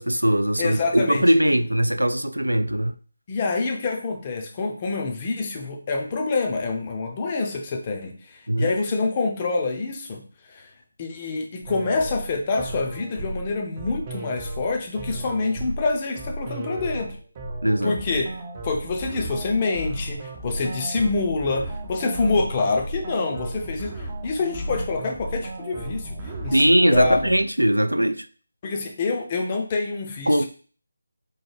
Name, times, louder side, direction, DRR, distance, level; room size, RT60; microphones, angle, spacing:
voice 1, 0.0-3.0 8.5-8.7 17.6-18.0 26.5-28.2 30.3-30.5, right 1 dB, 80° right, 0.3 m, -20 dB
voice 2, 0.6-1.2 3.3-10.2 10.5-10.7 11.0-17.2 17.8-18.3 18.6-26.2 26.4-27.3 28.6-30.5, left 3 dB, 25° left, 0.6 m, -26 dB
sound 1, 11.6-27.5, right 1 dB, 25° right, 0.5 m, -34 dB
4.6 x 2.2 x 3.2 m
figure-of-eight pair, 155°, 0 cm